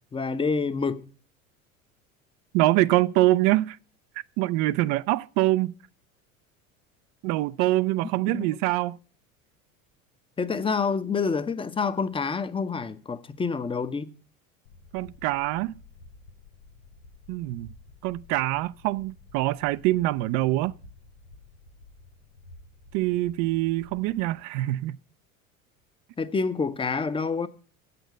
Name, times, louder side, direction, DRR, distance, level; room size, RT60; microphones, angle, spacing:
voice 1, 0.1-1.1 8.3-8.5 10.4-14.1 26.2-27.5, left 5 dB, 15° left, 0.6 m, -27 dB
voice 2, 2.5-3.8 4.4-5.7 7.2-9.0 14.9-15.7 17.3-17.7 18.0-20.7 22.9-25.0, right 17 dB, 45° right, 0.4 m, -24 dB
sound 1, 14.7-24.4, left 3 dB, 85° left, 0.9 m, -52 dB
7.9 x 6.8 x 7.9 m
hypercardioid pair, 75°, 42 cm